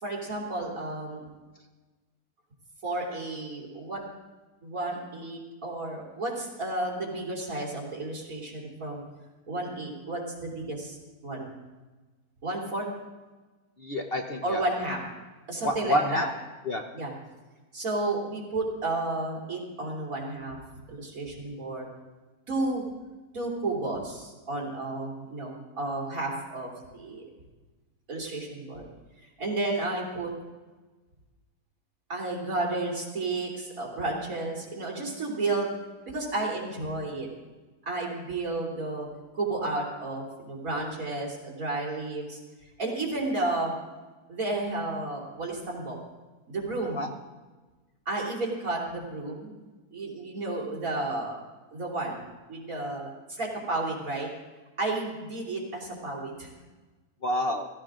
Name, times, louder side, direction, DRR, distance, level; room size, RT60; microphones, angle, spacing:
voice 1, 0.0-1.2 2.8-4.0 4.6-9.0 9.5-11.0 11.2-11.6 12.4-12.9 14.4-15.0 15.5-16.3 16.9-17.1 17.7-20.6 20.9-21.9 22.5-22.9 23.3-27.2 28.1-28.9 29.4-30.3 32.1-35.7 36.1-37.3 37.8-39.1 39.3-42.4 42.8-43.7 44.3-46.0 46.5-47.0 48.1-49.6 49.9-51.4 51.7-52.2 52.5-54.3 54.8-56.5, right 2 dB, 60° right, -2 dB, 3.6 m, -32 dB
voice 2, 13.8-14.6 15.6-16.3 16.6-16.8 46.9-47.1 57.2-57.7, left 1 dB, 45° left, 3 dB, 1.0 m, -28 dB
16.0 x 15.5 x 3.8 m, 1.3 s
omnidirectional pair, 1.6 m